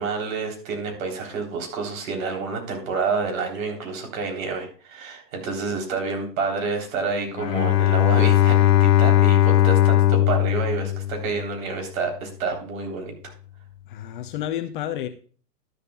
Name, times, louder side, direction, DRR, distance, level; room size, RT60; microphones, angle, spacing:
voice 1, 0.0-13.1, right 4 dB, 55° right, 3 dB, 3.6 m, -29 dB
Bowed string instrument, 7.4-11.7, left 12 dB, 75° left, 0.9 m, -18 dB
voice 2, 13.9-15.1, left 11 dB, 30° left, 9 dB, 0.7 m, -30 dB
12.0 x 11.0 x 2.3 m, 0.41 s
hypercardioid pair, 135°, 49 cm